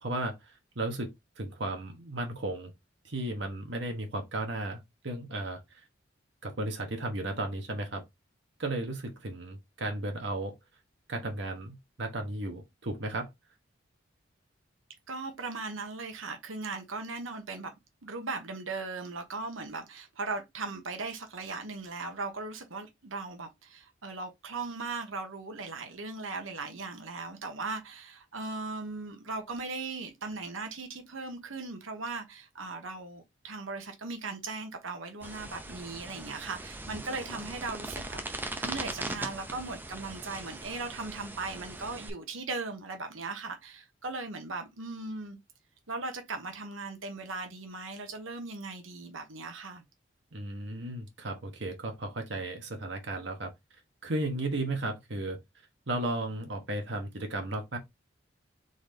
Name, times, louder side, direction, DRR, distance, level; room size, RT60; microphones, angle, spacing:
voice 1, 0.0-2.7 3.0-5.8 6.4-8.0 8.6-10.6 11.1-13.3 50.3-53.5 54.0-55.4 55.9-57.8, right 2 dB, 65° right, 1.0 m, -35 dB
voice 2, 15.1-17.7 18.0-45.4 45.9-49.8, right 3 dB, 90° right, 1.2 m, -38 dB
sound 1, 35.2-42.1, right 2 dB, 10° right, 0.6 m, -40 dB
4.0 x 3.8 x 3.4 m
head